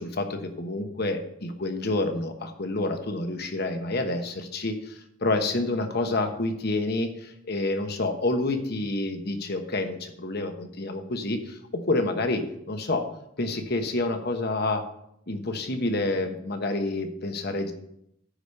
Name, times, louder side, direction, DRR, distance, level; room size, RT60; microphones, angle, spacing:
voice 1, 0.0-11.6 11.9-13.0 13.4-14.8 15.3-17.7, left 2 dB, 50° left, 6 dB, 1.1 m, -28 dB
10.0 x 5.0 x 6.8 m, 0.75 s
head